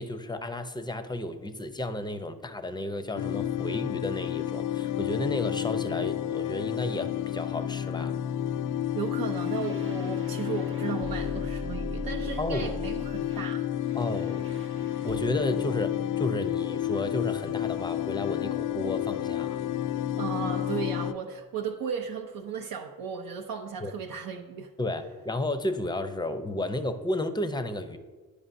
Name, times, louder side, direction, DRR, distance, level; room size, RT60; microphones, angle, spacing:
voice 1, 0.0-8.2 12.4-12.7 13.9-14.5 15.0-19.6 23.8-23.9 24.8-28.0, left 1 dB, 10° left, 10 dB, 0.6 m, -32 dB
sound 1, 3.2-21.1, left 11 dB, 55° left, 0.4 m, -31 dB
voice 2, 8.9-13.7 20.2-24.7, right 7 dB, 65° right, 2 dB, 0.6 m, -35 dB
Futuristic Threat, 9.2-15.7, right 1 dB, 35° right, 0.8 m, -41 dB
sound 2, 16.3-23.5, left 13 dB, 90° left, 0.7 m, -48 dB
9.8 x 5.1 x 2.6 m, 1.3 s
supercardioid pair, 60°, 38 cm